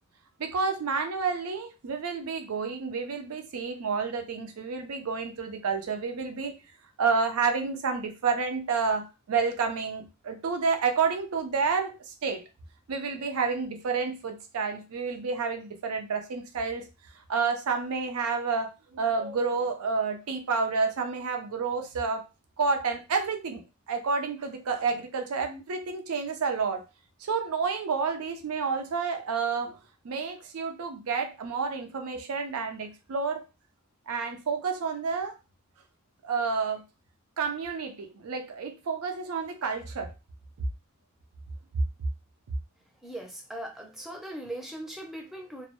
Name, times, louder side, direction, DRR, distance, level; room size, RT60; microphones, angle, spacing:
voice 1, 0.4-6.6 7.0-12.4 12.9-16.9 17.3-22.2 22.6-26.8 27.2-29.8 30.0-33.4 34.1-35.3 36.2-36.8 37.4-40.1, right 5 dB, 85° right, 6 dB, 0.5 m, -29 dB
voice 2, 43.0-45.7, right 1 dB, ahead, 0 dB, 0.4 m, -39 dB
2.1 x 2.0 x 2.9 m, 0.28 s
head